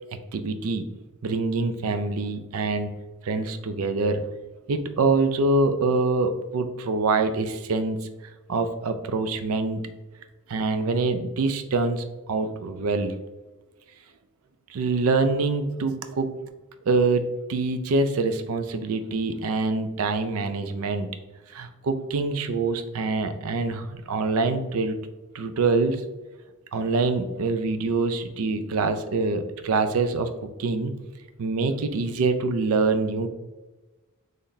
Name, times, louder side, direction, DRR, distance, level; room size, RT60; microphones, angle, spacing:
voice 1, 0.3-0.9 1.2-2.9 3.2-4.2 4.7-8.0 8.5-9.8 10.5-13.2 14.7-16.3 16.9-21.1 21.5-25.0 25.3-26.0 26.7-30.3 30.6-30.9 31.4-33.3, right 3 dB, 70° right, 8 dB, 0.4 m, -25 dB
3.8 x 3.3 x 2.6 m, 1.1 s
head